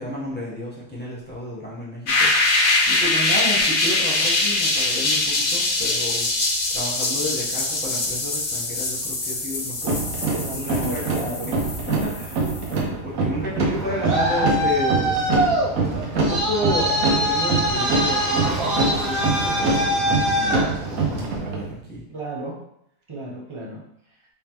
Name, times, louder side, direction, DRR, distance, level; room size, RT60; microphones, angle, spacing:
voice 1, 0.0-6.3 6.7-10.0 10.5-11.0 11.9-12.5 13.0-15.1 15.8-22.0, left 1 dB, 10° left, -6 dB, 0.7 m, -31 dB
sound 1, 2.1-12.8, left 2 dB, 50° left, 0.7 m, -23 dB
sound 2, 9.8-21.7, right 3 dB, 80° right, 1.2 m, -25 dB
voice 2, 10.3-11.5 12.6-12.7 22.1-22.6 23.1-23.8, right 1 dB, 30° right, -3 dB, 0.6 m, -32 dB
Traffic noise roadway noise, 13.7-21.4, equal, 50° right, 1.1 m, -24 dB
3.6 x 3.4 x 2.9 m, 0.74 s
omnidirectional pair, 1.4 m